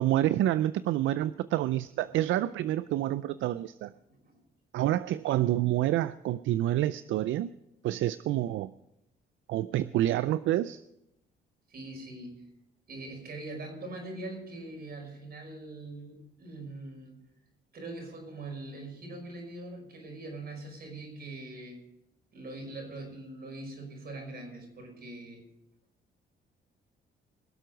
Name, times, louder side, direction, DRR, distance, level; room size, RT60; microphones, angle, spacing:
voice 1, 0.0-3.9 4.7-7.5 7.8-8.7 9.5-10.8, right 13 dB, 75° right, 15 dB, 0.4 m, -28 dB
voice 2, 11.7-12.4 12.9-17.2 17.7-21.8 22.3-25.4, right 2 dB, 50° right, 2 dB, 5.5 m, -42 dB
22.0 x 7.7 x 5.2 m, 0.85 s
cardioid pair, 90°, 20 cm